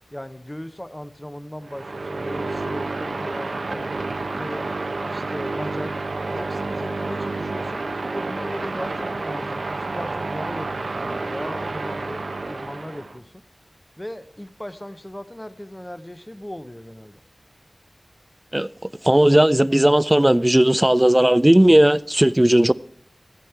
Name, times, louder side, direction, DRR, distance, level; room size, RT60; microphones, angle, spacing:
voice 1, 0.1-4.0 4.3-4.7 5.1-5.9 6.3-7.8 8.1-13.4 14.0-17.2, left 1 dB, 15° left, 0.8 m, -37 dB
sound 1, 1.6-13.2, right 3 dB, 85° right, 1.2 m, -29 dB
voice 2, 19.0-22.7, right 1 dB, 15° right, 0.4 m, -16 dB
16.0 x 8.3 x 4.4 m
wide cardioid pair, 70°, 0 cm